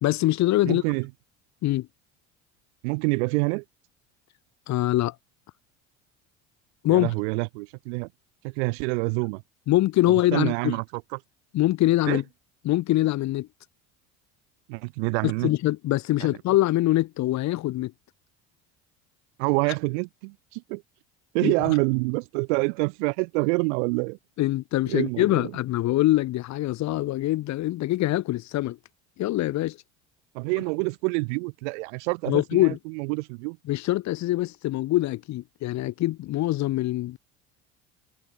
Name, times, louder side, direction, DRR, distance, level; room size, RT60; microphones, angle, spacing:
voice 1, 0.0-0.8 1.6-1.9 4.7-5.1 6.8-7.1 9.7-10.8 11.5-12.2 12.6-13.5 15.2-17.9 21.4-21.7 24.4-28.8 29.2-29.8 32.3-32.8 33.7-37.2, left 16 dB, 50° left, 1.0 m, -24 dB
voice 2, 0.6-1.1 2.8-3.6 6.9-8.1 8.4-9.4 10.1-10.8 12.1-12.2 14.7-15.5 16.2-16.3 19.4-20.8 21.3-24.2 24.9-25.5 30.3-33.6, right 31 dB, 75° right, 1.1 m, -27 dB
hypercardioid pair, 80°, 35 cm